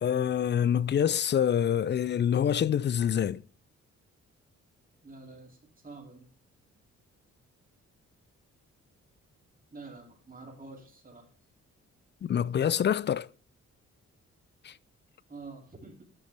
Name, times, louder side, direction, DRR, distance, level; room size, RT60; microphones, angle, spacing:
voice 1, 0.0-3.4 12.2-13.3 14.6-14.7, left 9 dB, 40° left, 0.4 m, -26 dB
voice 2, 5.0-6.3 9.7-11.3 15.3-16.0, right 3 dB, 30° right, 2.6 m, -47 dB
9.7 x 6.6 x 3.3 m
cardioid pair, 65°, 29 cm